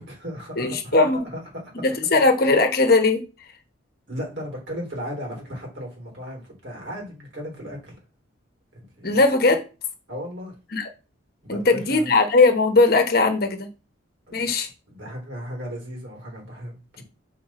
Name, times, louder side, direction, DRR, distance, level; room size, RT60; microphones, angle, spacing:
voice 1, 0.0-1.0 1.3-1.9 4.1-8.0 8.7-9.2 10.1-10.5 11.4-12.1 14.3-17.0, equal, 65° right, 3.2 m, -36 dB
voice 2, 0.6-1.3 1.8-3.2 9.0-9.6 10.7-10.8 11.5-13.7 14.3-14.7, left 3 dB, 50° left, 1.0 m, -19 dB
6.6 x 4.5 x 4.1 m
head